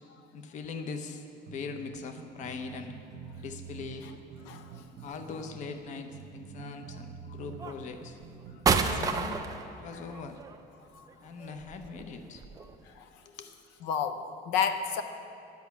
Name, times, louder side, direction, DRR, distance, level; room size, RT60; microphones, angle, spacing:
voice 1, 0.3-2.9 3.4-4.1 5.0-8.2 8.7-9.4 9.8-10.4 11.2-12.4 13.2-13.5, left 4 dB, 40° left, 7 dB, 0.7 m, -41 dB
sound 1, 1.5-8.8, right 7 dB, 75° right, 0.8 m, -47 dB
mortar line, 2.5-2.6 3.4-4.0 5.4-6.0 6.9-7.0 7.6-13.0, right 5 dB, 20° right, 0.4 m, -32 dB
voice 2, 4.4-4.8 9.7-10.0 10.9-11.1 12.9-13.1 13.8-15.0, left 7 dB, 80° left, 8 dB, 0.7 m, -32 dB
10.5 x 5.8 x 8.2 m, 2.7 s
cardioid pair, 175°, 19 cm